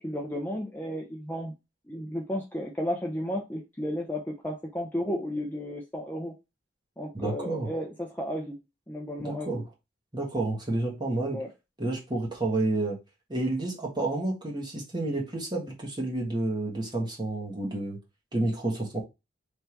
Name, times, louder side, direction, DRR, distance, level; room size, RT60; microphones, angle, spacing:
voice 1, 0.0-1.5 1.9-6.3 7.0-8.6 8.9-9.5 11.3-11.5, equal, 10° left, 0.5 m, -33 dB
voice 2, 7.1-7.7 9.2-9.6 10.1-11.4 11.8-13.0 13.3-18.0 18.3-19.0, right 2 dB, 25° right, 1.3 m, -30 dB
3.4 x 2.8 x 4.4 m
head